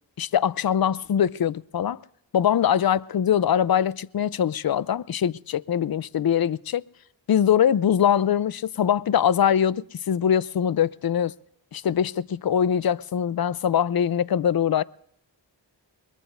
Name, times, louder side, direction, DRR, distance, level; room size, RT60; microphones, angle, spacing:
voice 1, 0.2-2.0 2.3-6.8 7.3-11.3 11.7-14.8, left 9 dB, 55° left, 0.5 m, -22 dB
23.0 x 21.5 x 2.5 m
cardioid pair, 40°, 44 cm